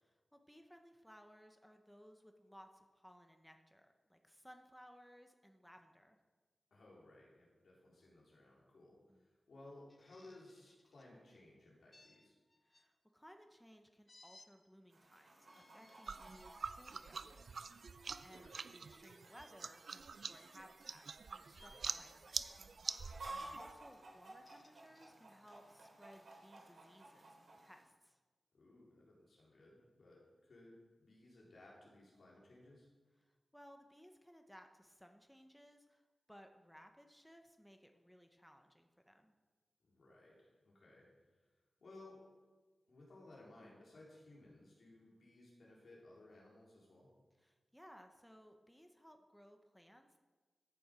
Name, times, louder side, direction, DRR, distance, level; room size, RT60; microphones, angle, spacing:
voice 1, 0.0-6.2 9.1-9.3 12.6-17.7 18.2-23.2 23.6-28.2 33.2-39.3 47.4-50.2, equal, ahead, 5 dB, 0.8 m, -61 dB
voice 2, 6.7-12.3 18.3-18.6 23.2-23.6 28.5-32.9 39.8-41.1 41.8-42.2 42.9-47.1, left 2 dB, 75° left, -4 dB, 3.7 m, -60 dB
sound 1, 9.9-11.1 11.9-12.9 14.1-14.5 15.3-16.7 17.3-17.5 19.3-19.5 20.3-20.9 21.5-21.8 22.3-22.8 24.2-25.1, left 2 dB, 30° left, 0.9 m, -66 dB
Chicken rooster, 14.9-27.8, right 2 dB, 90° right, 3.5 m, -56 dB
sound 2, 16.0-23.7, right 5 dB, 75° right, 0.4 m, -46 dB
14.0 x 7.0 x 5.0 m, 1.3 s
wide cardioid pair, 105°, 0 cm